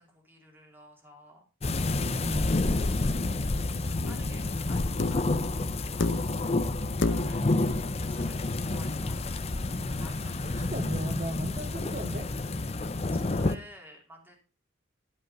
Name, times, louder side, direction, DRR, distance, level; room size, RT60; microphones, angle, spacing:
voice 1, 0.0-1.5 3.8-6.4 7.1-7.7 8.0-9.3 10.0-10.7 12.9-14.4, equal, 10° right, 1 dB, 2.7 m, -53 dB
sound 1, 1.6-13.6, left 2 dB, 30° left, 0.6 m, -29 dB
voice 2, 2.0-2.5 10.6-12.3, equal, 40° right, 4 dB, 1.1 m, -36 dB
sound 2, 4.0-4.3 5.0-5.4 6.0-6.5 7.0-7.5 8.9-9.0, left 2 dB, 65° left, 0.9 m, -30 dB
11.5 x 5.5 x 5.4 m, 0.33 s
head